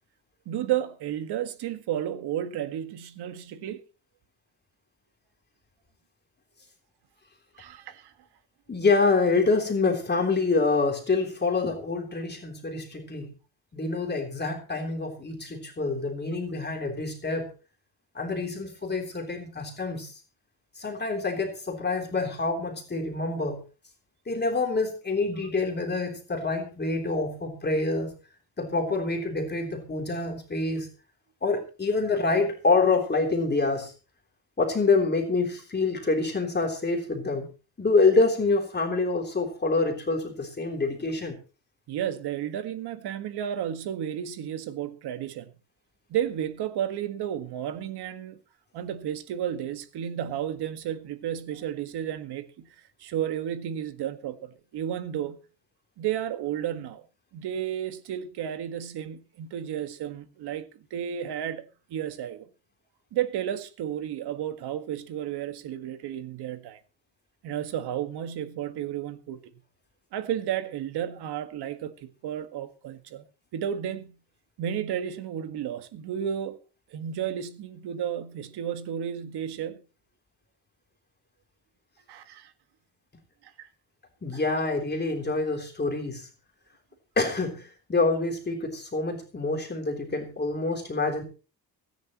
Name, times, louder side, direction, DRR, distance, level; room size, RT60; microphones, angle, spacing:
voice 1, 0.5-3.8 7.5-8.1 41.9-45.5 46.1-48.4 48.7-55.4 56.0-57.0 57.3-62.5 63.1-66.8 67.4-69.4 70.1-73.2 73.5-74.2 74.6-76.6 76.9-79.8 82.1-82.5 83.4-83.7 84.3-84.4, right 10 dB, 85° right, 1.8 m, -32 dB
voice 2, 8.7-13.3 13.7-17.5 18.2-20.1 20.8-23.6 24.3-28.2 28.6-30.9 31.4-33.9 34.6-37.5 37.8-41.4 84.2-86.3 87.2-91.2, left 3 dB, 25° left, 3.5 m, -26 dB
24.0 x 10.5 x 3.1 m
cardioid pair, 110°, 38 cm